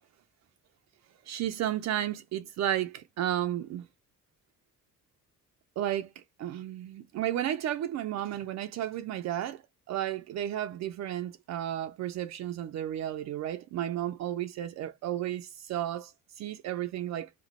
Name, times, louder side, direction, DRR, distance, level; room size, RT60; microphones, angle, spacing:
voice 1, 1.3-3.9 5.8-6.1 6.4-9.6 9.9-17.3, right 11 dB, 60° right, 0.4 m, -33 dB
3.0 x 2.1 x 4.0 m
cardioid pair, 90°, 30 cm